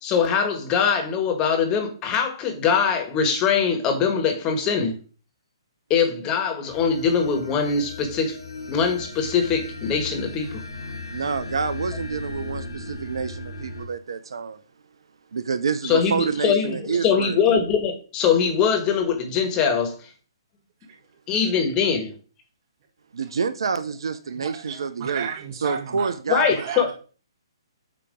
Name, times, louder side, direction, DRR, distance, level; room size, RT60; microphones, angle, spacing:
voice 1, 0.0-4.9 5.9-8.4 8.7-10.6 15.8-20.0 21.3-22.1 26.3-26.9, left 6 dB, 25° left, 1.4 m, -22 dB
sound 1, 6.7-13.9, left 3 dB, 75° left, 1.6 m, -36 dB
voice 2, 11.1-14.6 15.3-17.4 23.1-25.3 25.6-26.7, right 5 dB, 70° right, 0.5 m, -27 dB
voice 3, 24.3-26.1 26.5-26.9, right 6 dB, 40° right, 1.8 m, -34 dB
8.3 x 2.9 x 5.1 m
figure-of-eight pair, 135°, 3 cm